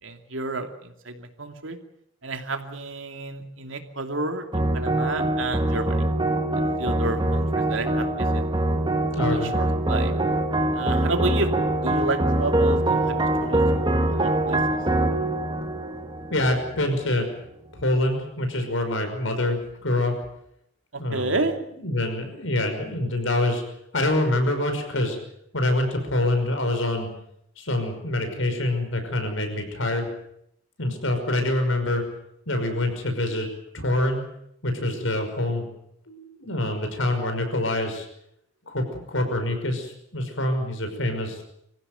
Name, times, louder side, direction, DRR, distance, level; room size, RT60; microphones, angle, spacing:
voice 1, 0.0-1.8 2.2-6.0 6.8-8.4 9.2-10.1 10.7-11.5 11.8-14.8 20.9-21.6, right 2 dB, 90° right, 6 dB, 2.8 m, -31 dB
sound 1, 4.5-17.0, right 1 dB, 25° right, 1.8 m, -24 dB
voice 2, 9.1-9.6 16.3-17.3 17.8-20.1 21.0-21.4 21.8-23.6 23.9-25.2 25.5-27.1 27.6-30.1 30.8-32.0 32.5-33.5 33.7-34.2 34.6-35.7 36.1-38.1 38.7-41.4, left 1 dB, 85° left, 6 dB, 5.7 m, -25 dB
25.5 x 15.5 x 9.1 m, 0.75 s
head